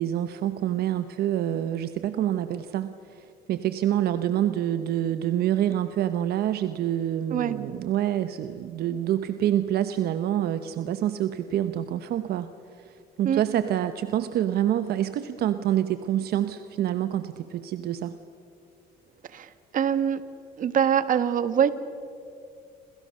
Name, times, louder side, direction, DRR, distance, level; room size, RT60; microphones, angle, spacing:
voice 1, 0.0-18.2, right 11 dB, 70° right, 10 dB, 1.0 m, -27 dB
voice 2, 19.3-20.2 20.6-21.7, right 8 dB, 50° right, 12 dB, 1.6 m, -24 dB
28.0 x 27.0 x 6.6 m, 2.5 s
cardioid pair, 110°, 17 cm